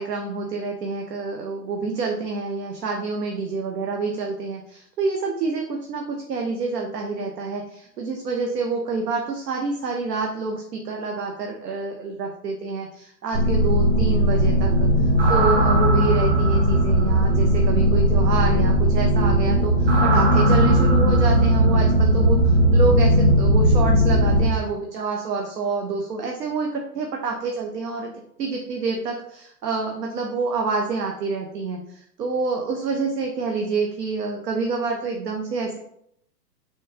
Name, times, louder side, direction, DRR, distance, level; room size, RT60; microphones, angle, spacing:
voice 1, 0.0-28.1 28.4-35.8, right 4 dB, 70° right, 2 dB, 0.7 m, -27 dB
sound 1, 13.3-24.5, right 1 dB, 40° right, 0.9 m, -18 dB
3.4 x 3.0 x 2.8 m, 0.74 s
figure-of-eight pair, 120°, 49 cm